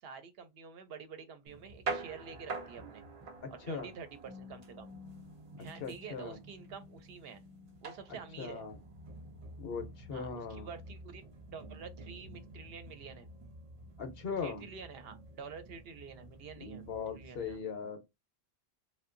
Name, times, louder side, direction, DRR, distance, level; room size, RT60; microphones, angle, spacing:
voice 1, 0.0-3.0 3.5-4.9 5.6-7.4 7.8-8.6 10.1-13.3 14.4-17.6, right 6 dB, 70° right, 0.8 m, -48 dB
sound 1, 1.5-17.6, right 3 dB, 55° right, 0.4 m, -47 dB
voice 2, 3.4-3.9 5.8-6.4 8.4-8.8 9.6-10.7 14.0-14.6 16.6-18.0, left 5 dB, 70° left, 0.8 m, -39 dB
2.6 x 2.2 x 2.4 m
omnidirectional pair, 1.1 m